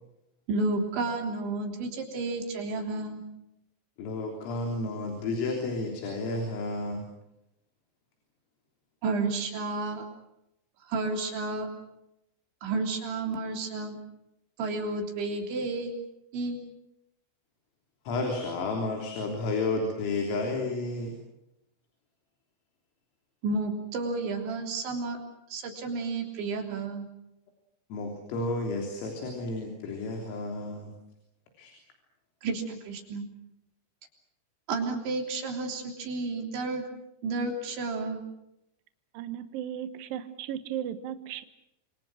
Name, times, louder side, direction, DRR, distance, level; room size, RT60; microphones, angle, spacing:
voice 1, 0.5-3.2 9.0-10.0 10.9-11.7 12.6-14.0 14.6-16.0 16.3-16.6 23.4-25.2 25.5-27.1 32.4-33.2 34.7-36.8 37.2-38.2, right 3 dB, 65° right, 3 dB, 5.5 m, -31 dB
voice 2, 4.0-7.1 18.1-21.1 27.9-30.9 31.6-31.7, left 2 dB, 80° left, 2 dB, 6.1 m, -31 dB
voice 3, 39.1-41.4, right 10 dB, 80° right, 11 dB, 2.0 m, -36 dB
27.5 x 26.5 x 6.3 m, 0.84 s
omnidirectional pair, 5.9 m